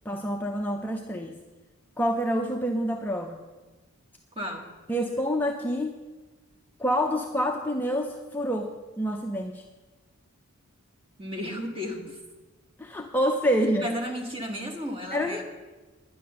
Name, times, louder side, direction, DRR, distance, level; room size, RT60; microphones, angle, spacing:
voice 1, 0.1-1.4 2.0-3.4 4.9-6.0 6.8-9.6 12.8-13.9 15.1-15.4, equal, 10° left, 2 dB, 0.5 m, -27 dB
voice 2, 4.3-4.7 11.2-12.2 13.8-15.4, equal, 25° right, 1 dB, 1.7 m, -33 dB
10.5 x 10.0 x 6.7 m, 1.2 s
head